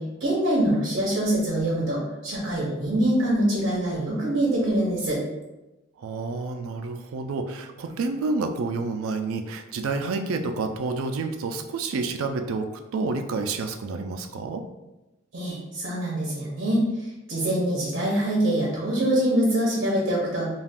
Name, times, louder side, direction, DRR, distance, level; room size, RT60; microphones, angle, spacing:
voice 1, 0.0-5.2 15.3-16.8 17.3-20.5, right 1 dB, 60° right, -4 dB, 0.7 m, -24 dB
voice 2, 6.0-14.6, right 3 dB, 85° right, 6 dB, 0.3 m, -29 dB
2.4 x 2.3 x 3.4 m, 1.0 s
head